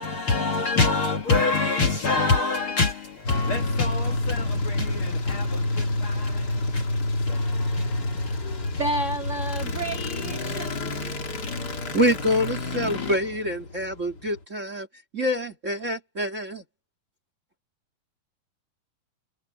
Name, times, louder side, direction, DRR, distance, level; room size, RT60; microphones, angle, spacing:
voice 1, 0.0-6.8 7.3-8.7, left 3 dB, 50° left, 1.8 m, -26 dB
sound 1, 3.2-14.4, left 2 dB, 30° left, 2.4 m, -28 dB
voice 2, 8.8-11.1, right 1 dB, 85° right, 0.6 m, -31 dB
voice 3, 11.9-14.9 15.1-16.6, equal, 30° right, 1.4 m, -26 dB
omnidirectional pair, 4.2 m